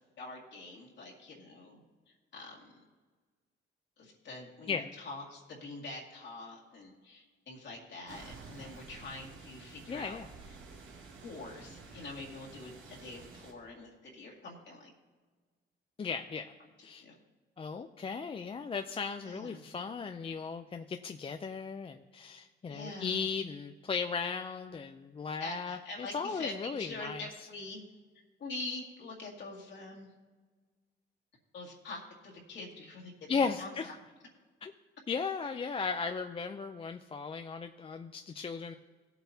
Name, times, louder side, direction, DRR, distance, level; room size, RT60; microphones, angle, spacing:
voice 1, 0.2-2.7 4.0-10.2 11.2-14.9 17.0-17.2 19.2-19.6 22.7-23.2 25.4-27.8 28.4-30.1 31.5-33.7, left 2 dB, 65° left, -2 dB, 2.1 m, -45 dB
sound 1, 8.1-13.5, right 4 dB, 85° right, 1.9 m, -51 dB
voice 2, 9.9-10.3 16.0-16.5 16.8-17.0 17.6-27.3 33.3-34.0 34.6-34.7 35.1-38.7, left 5 dB, 30° left, 7 dB, 0.4 m, -36 dB
16.5 x 8.0 x 2.8 m, 1.4 s
cardioid pair, 90°, 20 cm